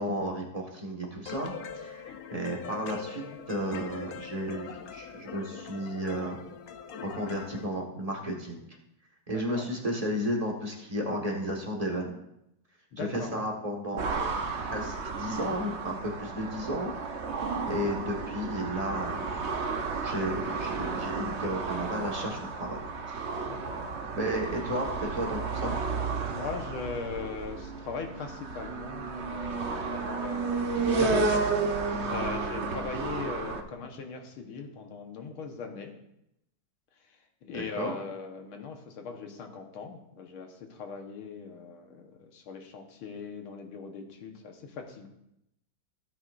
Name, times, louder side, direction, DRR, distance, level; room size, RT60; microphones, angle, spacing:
voice 1, 0.0-6.4 7.0-8.6 9.3-12.2 13.0-14.1 14.6-16.9 17.7-19.4 20.0-22.8 23.1-23.4 24.1-25.7 37.5-37.9, equal, 20° right, 0 dB, 1.4 m, -33 dB
sound 1, 1.2-7.7, left 6 dB, 60° left, 1.0 m, -42 dB
voice 2, 9.3-9.6 12.9-13.3 23.5-23.8 26.3-31.3 32.1-35.9 37.0-45.1, left 5 dB, 85° left, 4 dB, 2.1 m, -40 dB
sound 2, 14.0-33.6, right 4 dB, 55° right, 0.8 m, -32 dB
16.5 x 8.8 x 2.6 m, 0.83 s
omnidirectional pair, 2.3 m